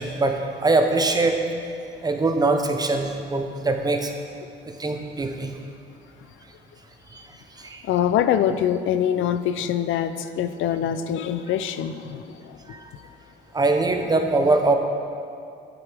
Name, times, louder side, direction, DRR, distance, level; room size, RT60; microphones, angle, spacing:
voice 1, 0.0-1.4 2.0-4.1 4.8-5.5 7.6-7.8 12.7-12.9 13.5-14.8, right 3 dB, 20° right, 4 dB, 0.8 m, -22 dB
voice 2, 7.8-12.6, left 9 dB, 80° left, 11 dB, 0.4 m, -24 dB
8.7 x 7.8 x 3.5 m, 2.4 s
cardioid pair, 90°, 20 cm